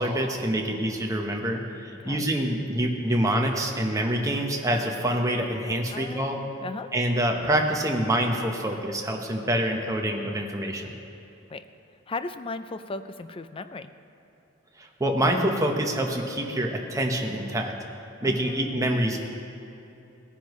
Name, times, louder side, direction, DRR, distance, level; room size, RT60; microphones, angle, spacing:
voice 1, 0.0-6.4 6.9-10.9 14.8-17.7 18.2-19.2, right 1 dB, 15° right, 1 dB, 1.0 m, -26 dB
voice 2, 5.9-6.9 11.5-11.6 12.1-13.9 18.2-19.2, left 3 dB, 25° left, 10 dB, 0.4 m, -37 dB
18.0 x 9.9 x 3.1 m, 2.9 s
head